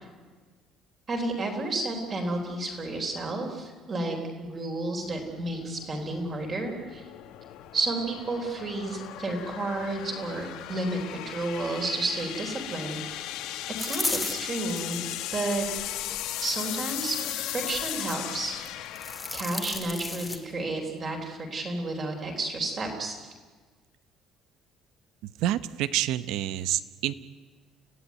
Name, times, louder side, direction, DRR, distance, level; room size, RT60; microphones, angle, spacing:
voice 1, 1.1-7.0 7.7-13.4 13.8-15.0 15.3-15.7 16.4-23.2, right 2 dB, 25° right, 3 dB, 3.7 m, -32 dB
sound 1, 5.0-20.4, left 13 dB, 75° left, 1.6 m, -37 dB
sound 2, 13.8-15.0 15.6-16.2 17.5-18.3 18.7-20.4, left 3 dB, 10° left, 1.9 m, -34 dB
voice 2, 25.4-27.1, right 13 dB, 70° right, 14 dB, 0.9 m, -28 dB
29.5 x 16.5 x 9.4 m, 1.4 s
cardioid pair, 175°, 0 cm